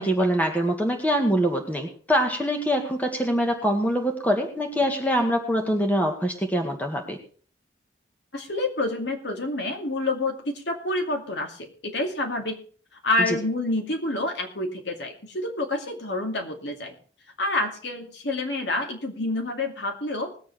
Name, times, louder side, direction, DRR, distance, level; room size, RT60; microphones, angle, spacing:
voice 1, 0.0-7.2 13.3-13.4, equal, 10° left, 3 dB, 1.9 m, -24 dB
voice 2, 8.3-12.6 13.0-17.0 17.4-20.3, left 2 dB, 65° left, 3 dB, 2.4 m, -28 dB
20.0 x 7.9 x 4.6 m, 0.43 s
head